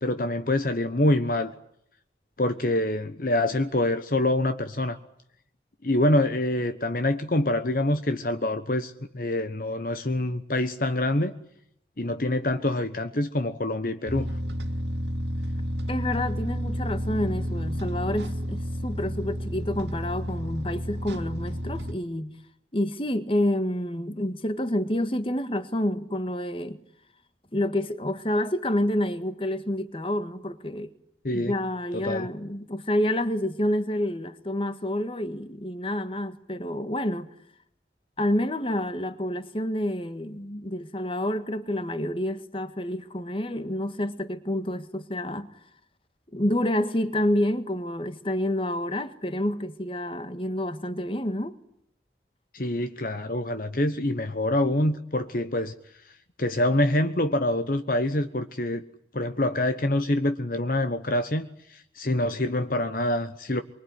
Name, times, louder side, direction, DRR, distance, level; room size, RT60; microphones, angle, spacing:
voice 1, 0.0-1.5 2.4-5.0 5.8-11.3 12.0-14.3 31.2-31.5 31.9-32.3 52.5-55.7 56.4-58.8 59.1-63.6, left 1 dB, 50° left, 1.2 m, -26 dB
sound 1, 14.1-21.9, equal, 85° right, 2.3 m, -31 dB
voice 2, 15.9-22.3 22.7-26.8 27.5-30.9 31.3-37.3 38.2-45.5 46.3-51.6, left 1 dB, 30° left, 1.7 m, -28 dB
25.5 x 24.0 x 9.7 m
head